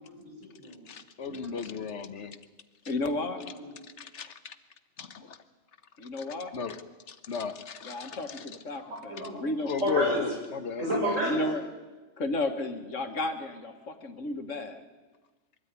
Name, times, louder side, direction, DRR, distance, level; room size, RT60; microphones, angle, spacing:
voice 1, 0.0-0.9 1.2-2.0 2.9-3.8 8.8-10.3 10.8-11.5, equal, 90° right, -1 dB, 6.0 m, -33 dB
voice 2, 0.9-2.4 4.0-4.6 5.0-5.4 6.2-6.3 6.5-6.8 7.1-8.5 9.7-11.2, left 6 dB, 65° left, 11 dB, 1.4 m, -35 dB
voice 3, 2.9-3.4 6.0-6.5 7.8-9.7 11.2-11.6 12.2-14.8, left 2 dB, 85° left, 7 dB, 2.1 m, -33 dB
22.5 x 13.5 x 9.6 m, 1.2 s
omnidirectional pair, 1.3 m